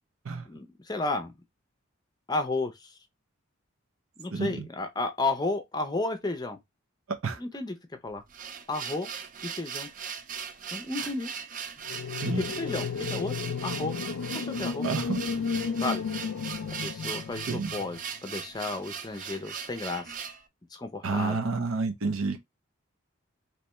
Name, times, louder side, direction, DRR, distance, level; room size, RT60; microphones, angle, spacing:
voice 1, 0.5-1.3 2.3-2.9 4.2-6.6 7.4-7.8 8.0-8.2 8.7-9.1 9.4-9.9 10.7-11.3 12.2-13.3 13.6-13.9 14.3-14.9 15.8-16.0 16.8-20.0 20.7-21.4, left 2 dB, 20° left, 0.5 m, -32 dB
voice 2, 4.3-4.7 7.2-7.4 12.2-12.4 14.8-15.2 17.5-17.7 21.0-22.4, right 4 dB, 85° right, 0.7 m, -29 dB
sound 1, 8.1-20.4, right 7 dB, 40° right, 0.4 m, -39 dB
sound 2, 11.9-18.0, left 5 dB, 80° left, 0.4 m, -33 dB
3.3 x 3.0 x 2.9 m
head